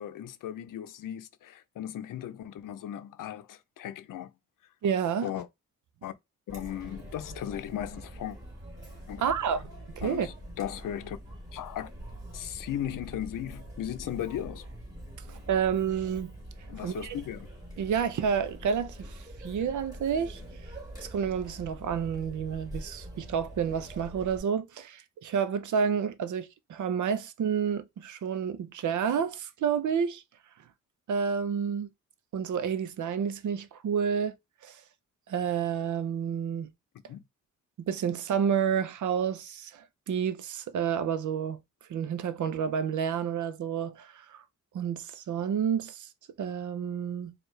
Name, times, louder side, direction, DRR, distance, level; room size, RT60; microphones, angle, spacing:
voice 1, 0.0-4.3 5.2-5.5 6.0-6.1 6.5-8.4 9.1-9.2 10.0-11.2 11.5-11.9 12.3-14.7 16.7-17.5 37.1-37.2, left 11 dB, 85° left, 0.6 m, -37 dB
voice 2, 4.8-5.3 9.2-9.6 10.0-10.3 15.3-16.3 16.8-17.2 17.8-20.7 21.0-30.2 31.1-31.9 32.3-34.4 34.6-34.8 35.3-36.7 37.8-41.6 41.9-44.4 44.7-46.1 46.4-47.3, right 7 dB, 70° right, 0.6 m, -30 dB
Chatter, 6.5-24.4, equal, 10° right, 2.5 m, -45 dB
4.5 x 2.4 x 3.2 m
wide cardioid pair, 120°, 31 cm